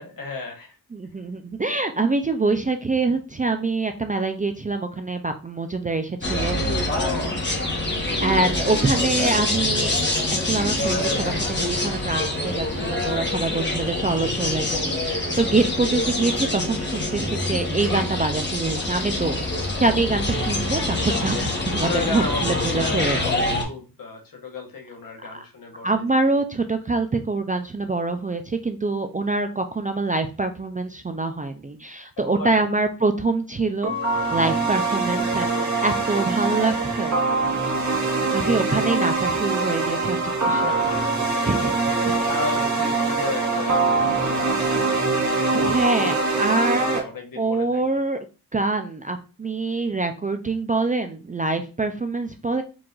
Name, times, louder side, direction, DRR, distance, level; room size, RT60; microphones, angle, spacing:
voice 1, 0.0-0.8 6.9-8.0 13.1-13.4 19.5-19.8 21.8-26.4 32.2-32.6 34.2-34.4 38.0-38.3 40.6-41.0 42.3-44.9 45.5-48.0, left 3 dB, 60° left, 3 dB, 1.1 m, -34 dB
voice 2, 0.9-6.9 8.2-23.2 25.3-25.4 25.8-37.1 38.3-40.7 41.4-41.7 42.2-42.3 45.5-47.0 47.4-48.2 48.5-52.6, right 3 dB, 20° right, 6 dB, 0.3 m, -25 dB
sound 1, 6.2-23.6, left 1 dB, 30° left, 1.1 m, -25 dB
sound 2, 33.8-47.0, right 3 dB, 50° right, 1.4 m, -23 dB
4.6 x 2.5 x 3.8 m, 0.32 s
wide cardioid pair, 125°, 38 cm